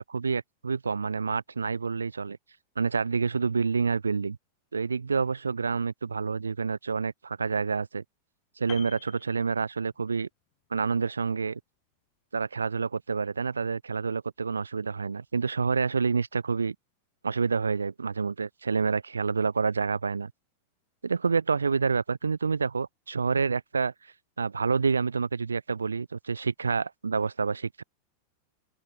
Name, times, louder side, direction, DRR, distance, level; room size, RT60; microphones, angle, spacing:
voice 1, 0.0-2.4 2.8-4.4 4.7-8.0 8.6-10.3 10.7-11.6 12.3-16.8 17.2-20.3 21.0-23.9 24.4-27.8, right 5 dB, 75° right, 0.5 m, -28 dB
Piano, 8.7-10.1 10.4-10.7, left 24 dB, 40° left, 6.3 m, -47 dB
open air
figure-of-eight pair, 90°, 0 cm